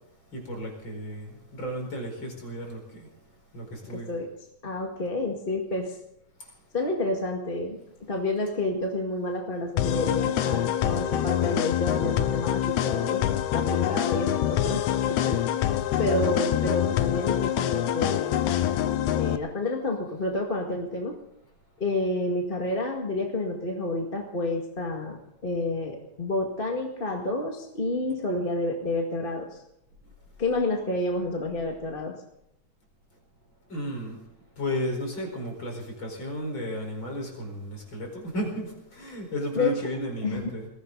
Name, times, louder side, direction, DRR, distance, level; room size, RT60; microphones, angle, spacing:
voice 1, 0.3-3.1 3.5-4.1 33.7-34.2 34.6-40.7, equal, 40° left, 1 dB, 5.4 m, -33 dB
voice 2, 3.8-4.3 4.6-6.0 6.7-7.8 8.1-13.3 13.5-15.4 16.0-18.4 19.1-21.1 21.8-25.2 25.4-29.5 30.4-32.1 39.5-39.7 40.2-40.5, left 2 dB, 20° left, 1 dB, 1.8 m, -29 dB
sound 1, 9.8-19.4, left 11 dB, 80° left, 2.2 m, -25 dB
21.0 x 16.0 x 4.0 m, 0.77 s
omnidirectional pair, 3.3 m